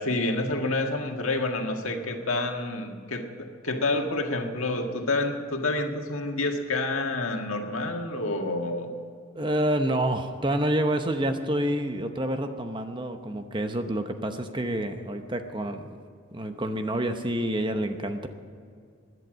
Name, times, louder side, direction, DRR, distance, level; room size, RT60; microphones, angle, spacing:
voice 1, 0.0-8.9, left 2 dB, 80° left, 3 dB, 1.8 m, -28 dB
voice 2, 9.3-16.0 16.3-18.3, right 1 dB, 20° right, 7 dB, 0.8 m, -28 dB
16.5 x 11.0 x 6.3 m, 2.3 s
head